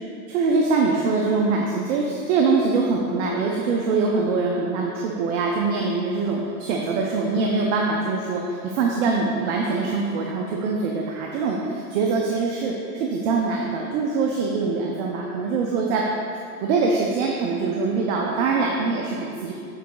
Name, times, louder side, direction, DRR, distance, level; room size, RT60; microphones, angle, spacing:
voice 1, 0.3-16.0 16.4-19.5, right 4 dB, 50° right, -1 dB, 0.8 m, -23 dB
7.4 x 4.1 x 3.8 m, 2.4 s
supercardioid pair, 140°, 45 cm